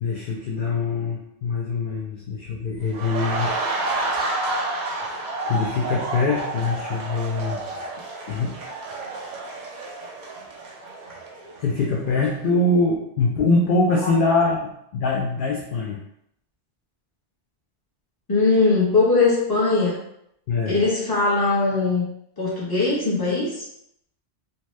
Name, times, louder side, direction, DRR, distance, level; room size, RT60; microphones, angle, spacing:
voice 1, 0.0-3.5 5.0-5.1 5.4-7.6 8.3-8.6 11.6-16.0 20.5-20.8, left 3 dB, 60° left, -3 dB, 0.6 m, -23 dB
sound 1, 2.9-11.8 12.1-12.3, right 2 dB, 50° right, 0.6 m, -30 dB
voice 2, 18.3-20.0 20.7-22.0 22.4-23.6, left 3 dB, 20° left, -6 dB, 0.9 m, -20 dB
2.8 x 2.2 x 3.1 m, 0.75 s
omnidirectional pair, 1.2 m